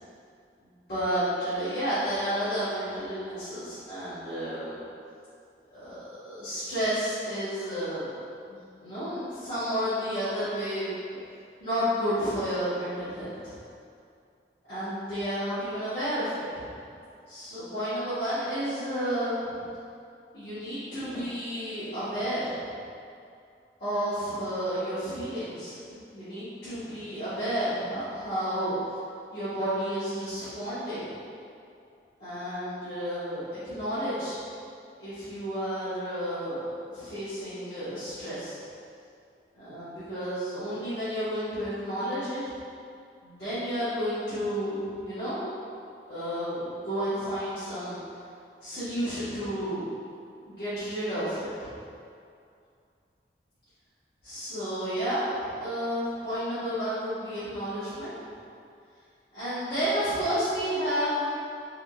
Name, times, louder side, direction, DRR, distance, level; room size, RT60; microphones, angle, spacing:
voice 1, 0.6-4.8 5.7-8.1 8.5-11.2 11.6-13.5 14.7-16.9 17.3-19.6 20.3-22.6 23.8-28.8 29.3-31.1 32.2-34.4 35.0-38.6 39.5-42.4 43.2-45.4 46.1-48.0 48.6-49.9 50.5-51.7 54.2-58.1 59.3-61.3, equal, 65° left, -19 dB, 1.5 m, -31 dB
3.5 x 3.4 x 2.4 m, 2.5 s
head